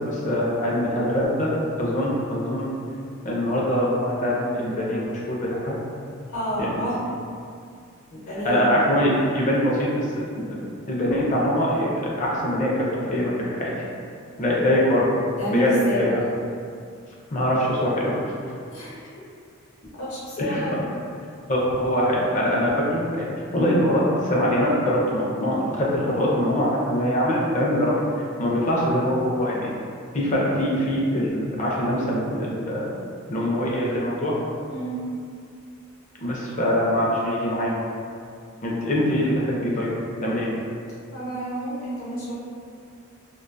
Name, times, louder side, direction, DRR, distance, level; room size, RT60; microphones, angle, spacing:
voice 1, 0.0-1.5 1.8-2.7 3.2-5.8 6.6-6.8 8.1-8.2 8.4-10.6 10.9-13.7 14.4-15.1 15.5-16.1 17.3-18.2 20.4-20.7 21.5-23.3 23.5-29.7 30.1-32.9 33.3-34.3 36.2-37.7 38.6-39.9 40.2-40.5, equal, 35° left, -4 dB, 0.4 m, -23 dB
voice 2, 6.3-7.0 8.3-8.8 15.4-16.1 18.7-19.0 20.0-20.8 34.7-35.0 41.1-42.3, right 1 dB, 75° left, -7 dB, 0.9 m, -29 dB
2.4 x 2.2 x 2.5 m, 2.3 s
head